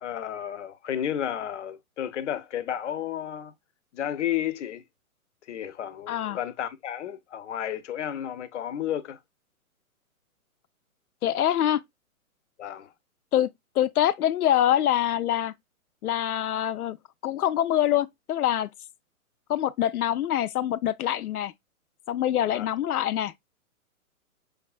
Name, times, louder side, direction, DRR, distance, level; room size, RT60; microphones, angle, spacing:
voice 1, 0.0-3.5 3.9-4.8 5.5-9.2 12.6-12.9 22.5-22.7, left 10 dB, 55° left, 0.7 m, -32 dB
voice 2, 6.1-6.4 11.2-11.8 13.3-13.5 13.8-15.5 16.0-17.0 17.2-18.7 19.5-21.5 22.1-23.3, left 11 dB, 85° left, 0.5 m, -25 dB
6.4 x 2.3 x 2.4 m
hypercardioid pair, 140°, 43 cm